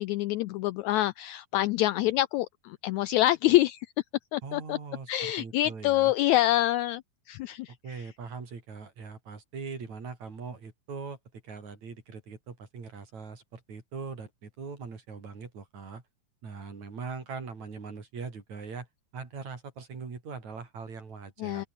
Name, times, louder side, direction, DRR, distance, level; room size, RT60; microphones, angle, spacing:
voice 1, 0.0-3.9 4.3-4.8 5.1-8.1 21.4-21.7, left 15 dB, 85° left, 1.6 m, -26 dB
voice 2, 4.4-6.1 7.7-11.2 11.4-16.0 16.4-18.9 19.1-21.7, right 5 dB, 55° right, 5.6 m, -41 dB
omnidirectional pair, 3.9 m